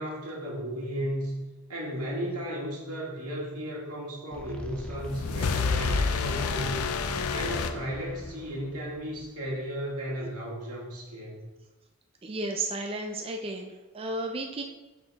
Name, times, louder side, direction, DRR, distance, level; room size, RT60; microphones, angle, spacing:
voice 1, 0.0-1.4 1.7-6.9 7.3-11.4, equal, 85° right, -3 dB, 2.1 m, -35 dB
sound 1, 4.3-9.5, left 1 dB, 5° left, 0.7 m, -40 dB
sound 2, 4.7-8.5, left 5 dB, 70° left, 0.5 m, -29 dB
voice 2, 12.2-14.6, right 2 dB, 25° right, 3 dB, 0.4 m, -33 dB
5.7 x 5.6 x 4.0 m, 1.1 s
head